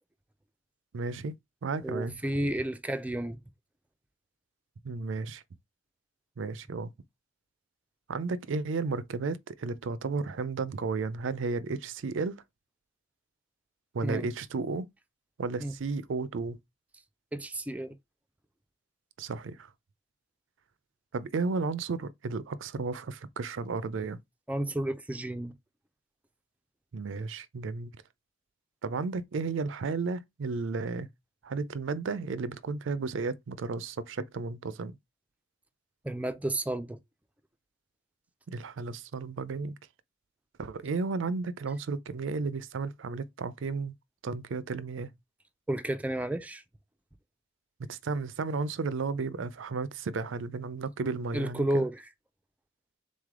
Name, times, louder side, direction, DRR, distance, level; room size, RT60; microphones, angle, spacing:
voice 1, 0.9-2.2 4.8-5.4 6.4-6.9 8.1-12.4 13.9-14.9 15.4-16.6 19.2-19.7 21.1-24.2 26.9-28.0 28.8-31.1 31.4-34.9 38.5-39.7 40.6-43.9 44.2-45.1 47.8-51.9, right 4 dB, 80° right, 0.4 m, -33 dB
voice 2, 1.8-3.4 14.0-14.2 15.6-15.7 17.3-18.0 24.5-25.5 36.0-37.0 45.7-46.6 51.3-52.1, right 1 dB, 10° right, 0.4 m, -31 dB
3.9 x 3.3 x 3.6 m
head